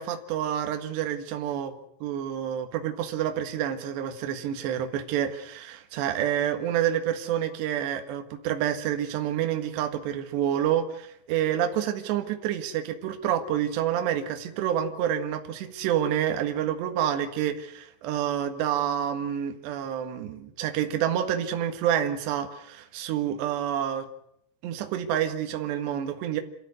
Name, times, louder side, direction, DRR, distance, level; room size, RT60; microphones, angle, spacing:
voice 1, 0.0-1.7 2.0-24.1 24.6-26.4, right 10 dB, 65° right, 6 dB, 3.7 m, -28 dB
27.5 x 13.5 x 9.6 m, 0.74 s
omnidirectional pair, 5.6 m